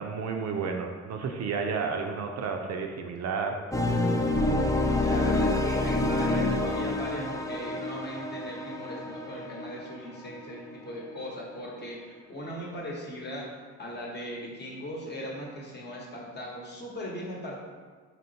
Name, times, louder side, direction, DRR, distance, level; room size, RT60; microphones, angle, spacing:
voice 1, 0.0-3.5, right 5 dB, 60° right, 3 dB, 0.5 m, -31 dB
sound 1, 3.7-10.6, left 2 dB, 10° left, 0.3 m, -28 dB
voice 2, 4.4-17.6, equal, 35° left, -3 dB, 1.0 m, -38 dB
4.2 x 2.9 x 2.8 m, 1.5 s
cardioid pair, 90°, 30 cm